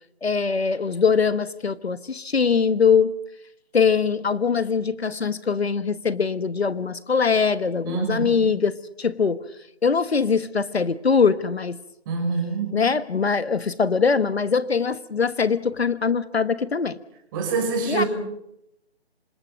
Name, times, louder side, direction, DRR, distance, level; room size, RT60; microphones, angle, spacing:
voice 1, 0.2-3.1 3.7-9.4 9.8-11.8 12.7-17.0 17.9-18.0, left 5 dB, 70° left, 14 dB, 1.3 m, -22 dB
voice 2, 7.8-8.5 12.1-12.8 17.3-18.1, right 4 dB, 20° right, 2 dB, 6.1 m, -26 dB
27.5 x 26.5 x 5.3 m, 0.80 s
figure-of-eight pair, 160°, 33 cm